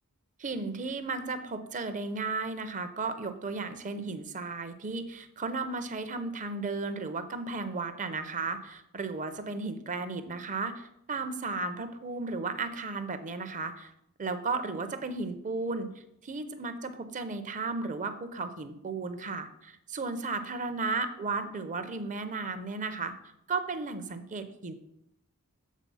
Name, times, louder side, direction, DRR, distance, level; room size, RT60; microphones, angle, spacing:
voice 1, 0.4-13.9 14.2-15.9 16.2-23.1 23.5-24.7, right 3 dB, 35° right, 10 dB, 0.5 m, -34 dB
7.3 x 3.8 x 5.5 m, 0.80 s
head